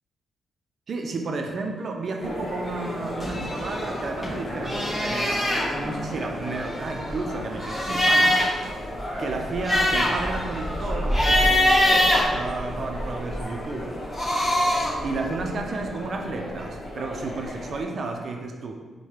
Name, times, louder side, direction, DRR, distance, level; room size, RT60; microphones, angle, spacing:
voice 1, 0.9-8.5 9.2-13.9 15.0-18.7, right 3 dB, 55° right, 2 dB, 0.5 m, -32 dB
sound 1, 2.2-17.8, left 1 dB, 45° left, 0.9 m, -35 dB
sound 2, 3.2-4.3 4.6-5.7 6.5-8.6 9.0-9.1 9.4-13.0 13.9-15.0, left 1 dB, 20° left, 1.0 m, -23 dB
4.7 x 2.2 x 2.9 m, 1.4 s
cardioid pair, 90°, 0 cm